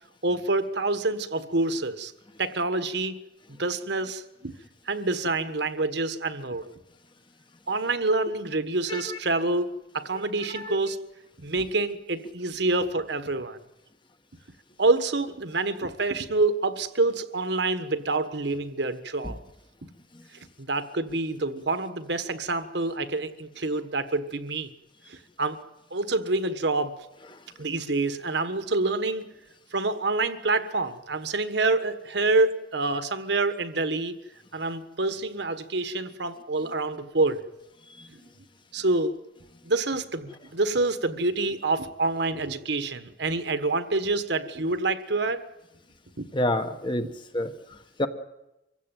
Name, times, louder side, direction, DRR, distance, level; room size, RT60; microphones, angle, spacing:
voice 1, 0.2-2.1 2.4-3.2 3.6-4.5 4.9-6.7 7.7-11.0 11.4-13.6 14.8-19.4 20.6-24.7 25.1-25.6 25.9-26.9 27.6-29.2 29.7-34.2 34.5-37.4 38.1-38.2 38.7-39.2 39.6-45.4 46.2-46.3, right 3 dB, 60° right, 11 dB, 1.4 m, -27 dB
voice 2, 46.3-47.1 47.3-47.5 48.0-48.1, left 1 dB, 25° left, 8 dB, 1.4 m, -27 dB
24.5 x 16.0 x 9.2 m, 0.94 s
head